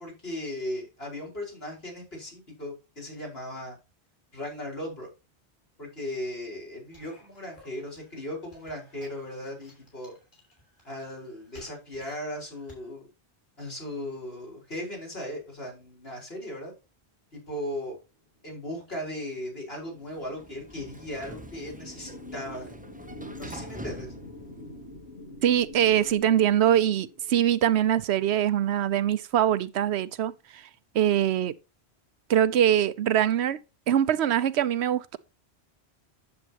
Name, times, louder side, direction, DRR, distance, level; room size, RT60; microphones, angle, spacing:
voice 1, 0.0-3.8 4.3-5.1 5.8-10.2 10.8-13.1 13.6-16.7 17.3-18.0 18.4-22.7 23.4-24.1, left 1 dB, 65° left, 5.2 m, -37 dB
sound 1, 6.9-12.9, left 1 dB, 45° left, 5.5 m, -57 dB
sound 2, 19.7-27.4, left 1 dB, 85° left, 2.5 m, -46 dB
Sliding door, 20.0-25.2, right 1 dB, 10° right, 0.6 m, -45 dB
voice 2, 25.4-30.7 30.9-31.5 32.3-33.6 33.9-35.2, right 10 dB, 80° right, 0.9 m, -23 dB
9.6 x 7.7 x 2.9 m
omnidirectional pair, 1.1 m